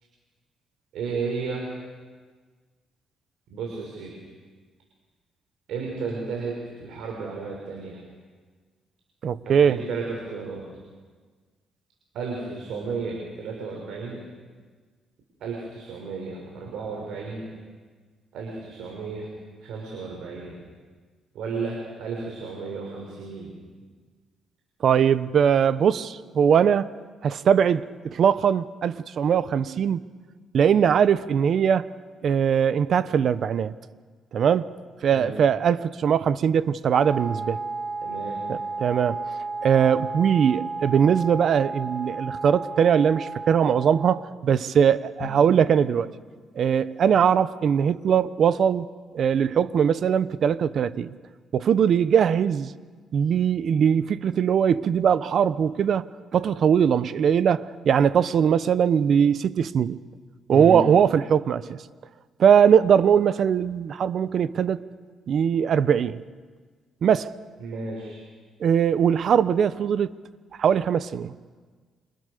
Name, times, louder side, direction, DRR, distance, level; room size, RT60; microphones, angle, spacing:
voice 1, 0.9-1.7 3.5-4.1 5.7-8.0 9.4-10.6 12.1-14.2 15.4-17.5 18.3-19.3 19.6-20.6 21.3-23.5 35.1-35.3 38.0-38.4 60.5-60.8 67.6-68.2, right 4 dB, 80° right, 6.4 m, -33 dB
voice 2, 9.2-9.8 24.8-26.9 27.2-30.0 30.5-31.9 32.2-33.7 34.3-34.7 35.0-37.6 38.5-39.2 39.6-46.1 46.6-48.8 49.1-51.1 51.5-52.7 53.1-56.1 56.3-60.0 60.5-61.8 62.4-64.8 65.3-66.2 67.0-67.3 68.6-70.1 70.6-71.3, right 8 dB, 60° right, 1.0 m, -21 dB
Wind instrument woodwind instrument, 36.9-44.3, right 3 dB, 30° right, 1.6 m, -33 dB
Drum, 45.2-46.9, left 4 dB, 25° left, 2.6 m, -40 dB
30.0 x 27.5 x 6.8 m
cardioid pair, 90°, 0 cm